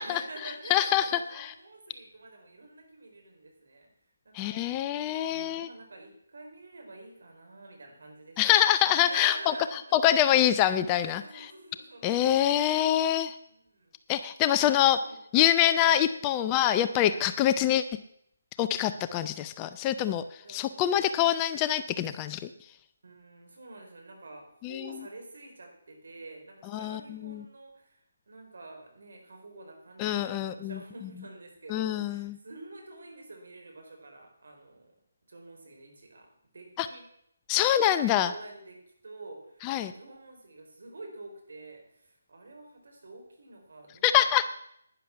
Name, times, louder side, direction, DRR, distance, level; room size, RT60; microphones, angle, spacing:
voice 1, 0.0-3.9 4.2-8.6 9.0-10.0 11.1-12.2 12.5-13.1 13.4-13.9 14.4-14.7 15.0-15.2 17.1-17.3 20.4-21.3 23.0-34.9 35.3-36.3 36.5-37.1 37.5-44.5, right 2 dB, 65° right, 2 dB, 4.4 m, -48 dB
voice 2, 0.7-1.1 1.3-1.5 4.3-5.7 8.4-9.5 9.9-11.5 12.0-13.4 14.1-15.0 15.3-17.8 18.6-22.4 24.6-24.8 26.7-27.4 30.0-30.8 31.7-32.3 36.8-36.9 37.5-38.3 39.6-39.9 44.0-44.4, left 11 dB, 20° left, 12 dB, 0.5 m, -25 dB
11.0 x 10.0 x 5.9 m, 0.73 s
figure-of-eight pair, 150°, 0 cm